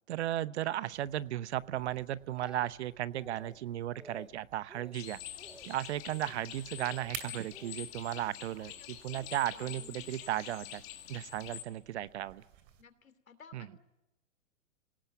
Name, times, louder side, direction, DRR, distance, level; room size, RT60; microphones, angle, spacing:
voice 1, 0.1-5.2 5.6-10.8 11.1-12.4 13.5-13.7, right 13 dB, 55° right, 18 dB, 0.9 m, -35 dB
sound 1, 0.9-12.8, right 10 dB, 40° right, 2.8 m, -54 dB
Speech, 1.9-2.9 3.2-3.6 3.9-4.3 4.7-5.0 5.4-5.7 6.0-6.4 6.8-7.1 7.5-8.3 9.1-9.4, right 1 dB, ahead, 0.8 m, -53 dB
sound 2, 4.9-11.6, left 13 dB, 35° left, 2.5 m, -47 dB
voice 2, 8.5-8.9 9.2-10.4 12.8-13.8, left 6 dB, 85° left, 11 dB, 3.0 m, -57 dB
27.0 x 18.0 x 9.2 m, 0.99 s
hypercardioid pair, 130°, 40 cm